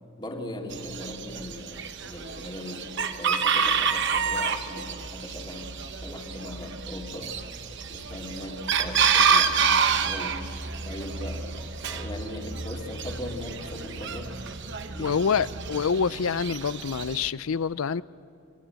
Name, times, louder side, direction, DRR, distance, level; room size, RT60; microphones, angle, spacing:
voice 1, 0.2-7.4 7.9-10.6 10.8-14.4 14.9-15.4, left 1 dB, 20° left, 2.4 m, -39 dB
Chicken rooster, 0.7-17.3, right 6 dB, 55° right, 1.1 m, -28 dB
voice 2, 15.0-18.0, left 6 dB, 70° left, 0.5 m, -26 dB
26.0 x 23.0 x 7.7 m
head